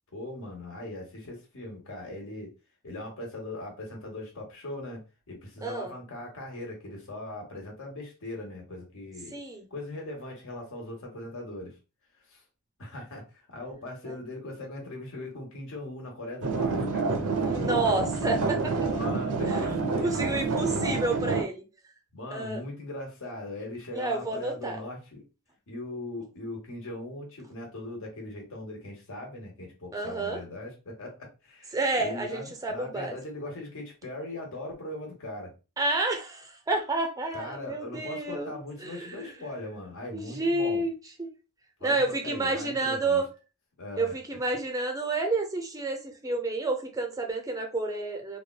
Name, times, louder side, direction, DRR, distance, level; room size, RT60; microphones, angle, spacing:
voice 1, 0.1-2.5 2.8-5.0 5.3-9.4 9.7-11.8 12.3-12.4 12.8-17.1 18.9-20.8 22.1-25.2 25.7-35.5 37.3-40.9 41.8-43.2 43.8-44.1, left 2 dB, 65° left, 1.0 m, -40 dB
voice 2, 5.6-5.9 9.3-9.7 14.1-14.2 17.4-18.7 19.5-19.6 20.0-21.6 22.3-22.6 23.9-24.8 29.9-30.4 31.7-33.1 35.8-39.3 40.1-40.9 41.2-41.3 41.8-43.3 44.0-48.4, right 2 dB, 15° right, 0.4 m, -30 dB
sound 1, 16.4-21.4, right 4 dB, 70° right, 0.5 m, -28 dB
3.4 x 2.2 x 2.3 m
head